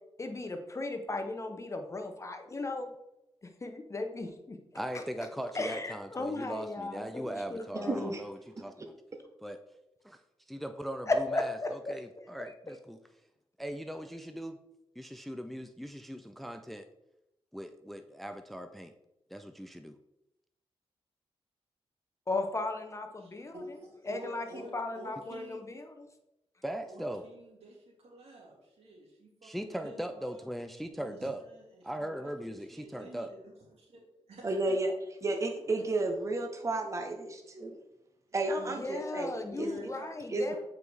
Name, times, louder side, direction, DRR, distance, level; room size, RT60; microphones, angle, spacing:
voice 1, 0.2-2.9 3.4-4.6 4.9-5.0 5.5-8.1 11.1-11.9 12.4-12.5 22.3-23.6 24.1-26.1 38.6-40.6, left 2 dB, 30° left, 5 dB, 0.8 m, -36 dB
voice 2, 4.7-8.9 9.4-9.6 10.0-10.2 10.5-13.0 13.6-14.6 15.0-16.9 17.5-18.9 19.3-20.0 26.6-27.2 29.4-31.4 31.8-33.3, equal, ahead, 7 dB, 0.4 m, -39 dB
voice 3, 7.8-8.2 34.4-34.9 35.2-37.8 38.3-39.7 40.3-40.6, right 2 dB, 30° right, 3 dB, 0.8 m, -32 dB
voice 4, 23.2-25.6 26.9-30.4 30.9-34.8 38.3-38.7 39.4-40.2 40.5-40.6, right 1 dB, 80° right, -4 dB, 2.5 m, -49 dB
7.5 x 4.7 x 3.3 m, 0.87 s
wide cardioid pair, 110°, 10 cm